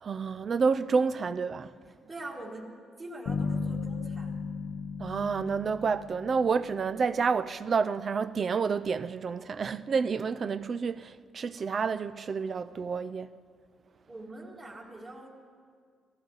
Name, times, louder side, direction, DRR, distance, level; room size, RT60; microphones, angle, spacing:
voice 1, 0.0-1.7 5.0-13.3, right 5 dB, 45° right, 0.4 m, -29 dB
voice 2, 2.1-4.4 14.1-15.3, right 1 dB, 30° right, 1.9 m, -43 dB
sound 1, 3.3-7.0, left 5 dB, 70° left, 0.7 m, -35 dB
17.5 x 14.5 x 3.9 m
cardioid pair, 90°, 0 cm